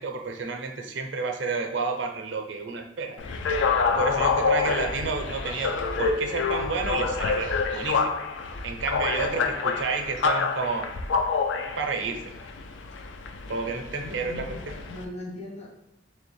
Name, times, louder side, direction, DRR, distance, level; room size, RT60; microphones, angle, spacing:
voice 1, 0.0-3.2 4.0-8.1 8.6-10.9 11.8-12.3 13.5-14.7, right 4 dB, 70° right, 4 dB, 0.5 m, -30 dB
sound 1, 3.2-15.0, left 4 dB, 75° left, 0.4 m, -27 dB
voice 2, 9.2-9.6 14.0-15.7, left 1 dB, 35° left, -2 dB, 0.8 m, -40 dB
3.5 x 3.2 x 3.1 m, 0.84 s
head